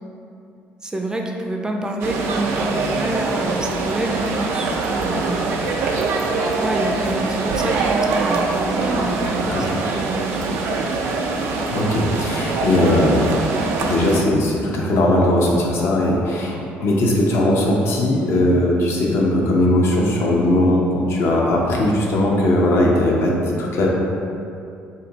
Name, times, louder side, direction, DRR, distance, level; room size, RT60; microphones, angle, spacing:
voice 1, 0.8-5.4 6.6-10.8, right 1 dB, 15° right, 1 dB, 0.4 m, -27 dB
sound 1, 2.0-14.2, right 3 dB, 80° right, 0.3 m, -23 dB
voice 2, 11.6-13.3 13.8-16.5 16.8-23.9, left 1 dB, 65° left, -2 dB, 0.6 m, -19 dB
2.6 x 2.5 x 4.0 m, 2.6 s
supercardioid pair, 75°, 5 cm